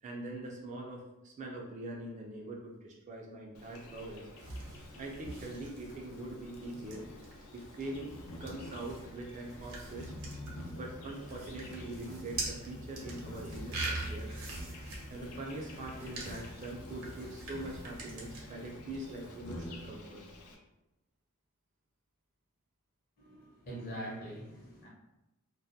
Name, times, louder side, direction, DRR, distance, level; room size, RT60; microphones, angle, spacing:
voice 1, 0.0-4.3 5.0-7.0 7.5-8.1 8.4-10.1 10.8-14.3 14.6-14.7 15.1-20.2, right 1 dB, 35° right, -1 dB, 0.3 m, -43 dB
Insect, 3.5-20.5, left 1 dB, 80° left, 0.5 m, -48 dB
sound 1, 4.4-18.4, right 2 dB, 90° right, 0.7 m, -44 dB
voice 2, 23.2-24.9, right 1 dB, 40° left, -4 dB, 0.7 m, -43 dB
2.2 x 2.1 x 2.6 m, 0.94 s
head